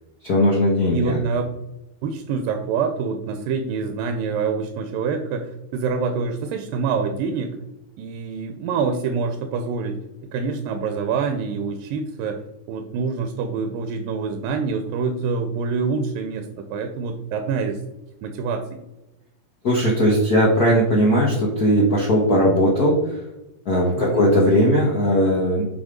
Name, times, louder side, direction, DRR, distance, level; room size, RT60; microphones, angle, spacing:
voice 1, 0.2-1.2 19.6-23.2 23.6-25.6, equal, 80° left, -3 dB, 0.8 m, -18 dB
voice 2, 0.9-1.5 2.0-7.6 8.0-10.0 10.3-12.4 12.7-17.8 18.2-18.8 24.0-24.3, right 5 dB, 85° right, 6 dB, 2.4 m, -26 dB
6.2 x 5.7 x 5.1 m, 0.95 s
omnidirectional pair, 3.9 m